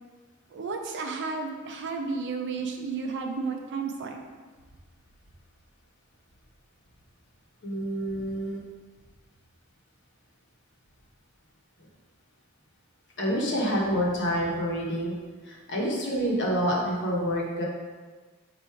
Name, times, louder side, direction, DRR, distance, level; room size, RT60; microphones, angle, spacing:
voice 1, 0.5-4.2, right 4 dB, 55° right, 3 dB, 0.5 m, -32 dB
voice 2, 2.5-3.0 7.6-8.6 13.2-15.1 15.4-17.6, equal, 55° left, -3 dB, 1.0 m, -28 dB
4.6 x 2.6 x 4.5 m, 1.4 s
head